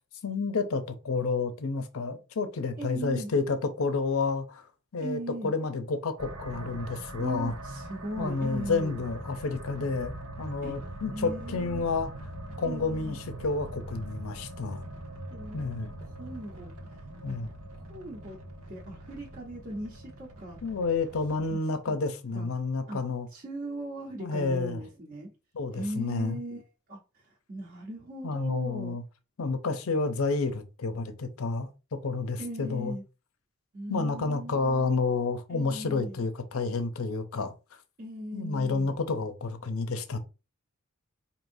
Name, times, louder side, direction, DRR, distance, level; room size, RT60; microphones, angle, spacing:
voice 1, 0.2-4.7 4.9-7.5 8.2-12.1 12.6-14.8 15.5-15.9 17.2-17.5 20.6-23.3 24.2-24.8 25.5-26.4 28.2-29.0 29.4-33.0 33.9-37.5 38.3-40.2, left 4 dB, 70° left, 0.6 m, -30 dB
voice 2, 2.8-3.3 5.0-5.5 7.2-9.0 10.6-10.7 11.1-11.9 12.6-13.2 15.3-16.7 17.2-17.4 17.7-18.4 18.7-20.6 21.4-21.6 21.9-22.0 22.3-22.5 22.9-23.0 23.3-25.3 25.7-26.6 26.9-29.0 32.4-33.0 33.7-34.9 35.5-36.2 38.0-38.9, right 1 dB, 45° right, 1.0 m, -38 dB
sound 1, 6.2-21.5, right 1 dB, 85° right, 1.0 m, -42 dB
4.8 x 2.8 x 2.6 m
head